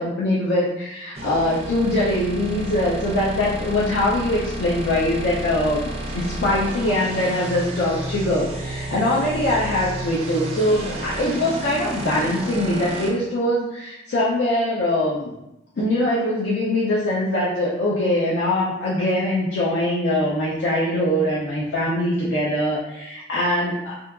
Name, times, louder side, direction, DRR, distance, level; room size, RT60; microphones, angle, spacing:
voice 1, 0.0-15.3 15.8-24.0, left 1 dB, 70° left, -6 dB, 0.5 m, -22 dB
sound 1, 1.1-13.1, right 1 dB, 35° right, 0.4 m, -31 dB
2.7 x 2.4 x 2.3 m, 0.88 s
head